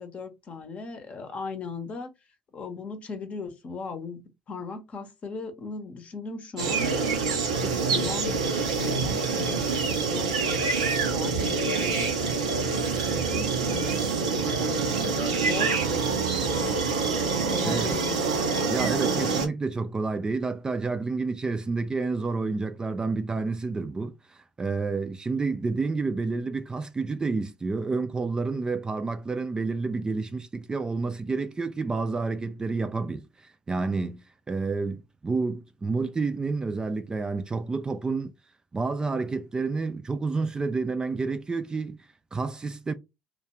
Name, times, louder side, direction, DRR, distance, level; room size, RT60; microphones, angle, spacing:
voice 1, 0.0-2.1 2.5-6.9 7.5-10.7 11.0-12.8 13.1-16.8 17.3-18.4, left 4 dB, 40° left, 0.7 m, -38 dB
sound 1, 6.6-19.5, right 4 dB, 85° right, 0.5 m, -26 dB
voice 2, 17.6-18.0 18.7-38.3 38.7-42.9, right 4 dB, 20° right, 0.3 m, -29 dB
2.3 x 2.2 x 2.8 m
hypercardioid pair, 60°, 3 cm